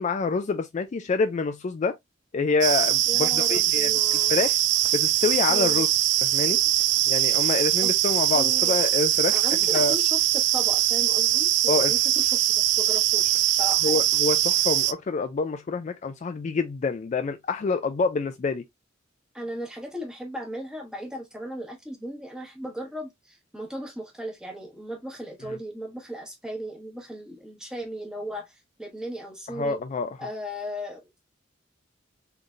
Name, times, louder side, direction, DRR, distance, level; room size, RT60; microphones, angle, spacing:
voice 1, 0.0-2.0 2.3-4.6 4.9-5.9 6.2-6.6 7.1-9.4 9.7-9.9 11.7-11.9 13.8-18.6 25.4-25.6 29.5-30.2, left 4 dB, 35° left, 0.3 m, -27 dB
sound 1, 2.6-14.9, right 13 dB, 60° right, 0.3 m, -22 dB
voice 2, 3.1-4.4 5.5-5.8 7.8-7.9 8.3-8.8 9.3-14.0 19.3-29.8 30.2-31.2, right 1 dB, 5° right, 1.2 m, -36 dB
3.8 x 3.3 x 2.5 m
head